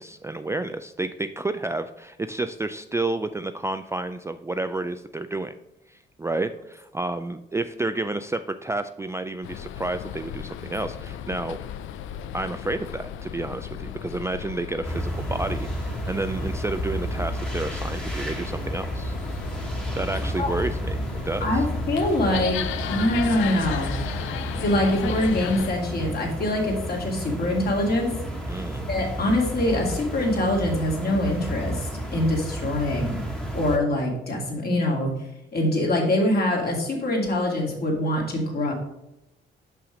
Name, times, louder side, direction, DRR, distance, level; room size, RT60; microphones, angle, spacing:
voice 1, 0.0-5.5 5.9-11.6 12.3-19.1 19.9-21.0 21.3-21.6 28.5-28.9, right 2 dB, 15° right, 9 dB, 0.3 m, -30 dB
sound 1, 9.4-25.7, left 10 dB, 80° left, 0.4 m, -36 dB
sound 2, 14.8-33.8, right 1 dB, 5° left, 1.3 m, -31 dB
voice 2, 21.4-22.6 22.9-24.0 24.5-28.1 28.9-35.1 35.5-38.7, left 1 dB, 50° left, -1 dB, 2.3 m, -24 dB
5.8 x 5.6 x 4.9 m, 0.88 s
cardioid pair, 90°, 20 cm